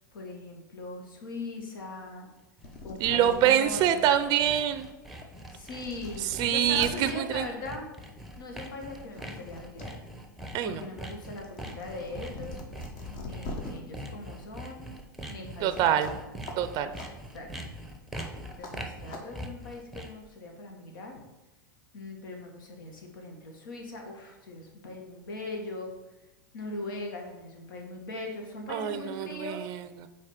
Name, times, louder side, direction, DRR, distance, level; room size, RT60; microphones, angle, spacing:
voice 1, 0.1-2.3 2.8-4.5 5.5-7.9 8.4-9.9 10.6-12.6 13.1-14.9 15.3-16.1 17.3-17.5 18.5-21.2 21.9-25.9 26.5-29.7, left 2 dB, 75° left, 2 dB, 1.5 m, -40 dB
sound 1, 2.3-2.4 2.6-3.7 4.3-4.4 5.2-5.3 5.6-6.9 8.2-8.4 8.8-9.9 10.2-13.7 16.0-16.2 16.5-16.6 16.9-17.1 18.2-18.3 18.6-18.7 19.1-19.2, left 2 dB, 45° left, 1.3 m, -42 dB
Sawing, 2.4-20.3, right 1 dB, ahead, 0.7 m, -43 dB
voice 2, 3.0-4.9 6.2-7.5 10.5-10.8 15.6-16.1 16.6-16.9 28.7-30.1, right 10 dB, 40° right, 11 dB, 0.5 m, -25 dB
4.8 x 4.2 x 5.7 m, 1.0 s
hypercardioid pair, 115°, 11 cm